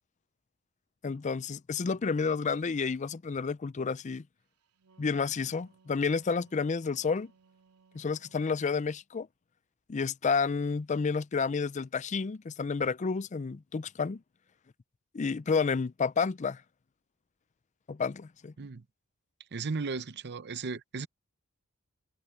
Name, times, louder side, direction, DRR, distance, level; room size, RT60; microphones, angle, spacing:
voice 1, 1.0-4.2 5.0-7.3 7.9-9.3 9.9-14.2 15.1-16.6 17.9-18.5, left 5 dB, 30° left, 0.4 m, -30 dB
Wind instrument woodwind instrument, 4.6-8.8, right 5 dB, 90° right, 3.3 m, -64 dB
voice 2, 19.5-21.1, right 4 dB, 50° right, 0.7 m, -35 dB
head